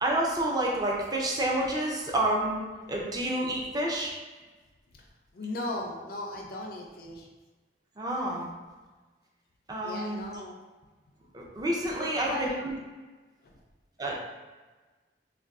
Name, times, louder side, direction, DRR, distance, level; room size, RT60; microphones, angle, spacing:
voice 1, 0.0-4.1 8.0-8.5 9.7-10.2 11.3-12.7 14.0-14.2, right 1 dB, 20° right, -2 dB, 0.4 m, -29 dB
voice 2, 5.3-7.3 9.8-10.6 12.0-12.6 13.4-13.5, left 2 dB, 55° left, 0 dB, 0.4 m, -37 dB
2.4 x 2.3 x 3.4 m, 1.3 s
head